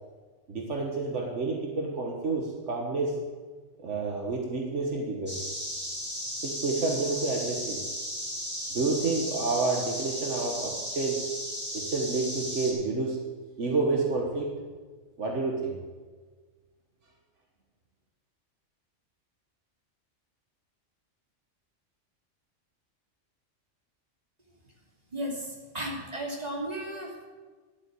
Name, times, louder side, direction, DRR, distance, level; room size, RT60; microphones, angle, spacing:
voice 1, 0.5-3.2 3.8-5.4 6.4-7.8 8.7-11.2 11.7-13.2 13.6-14.6 15.2-15.7, right 3 dB, 75° right, 1 dB, 1.7 m, -29 dB
sound 1, 5.3-12.7, equal, 10° right, 4.6 m, -35 dB
voice 2, 25.1-27.2, right 1 dB, 30° right, -2 dB, 2.8 m, -35 dB
11.5 x 8.7 x 8.3 m, 1.4 s
omnidirectional pair, 1.3 m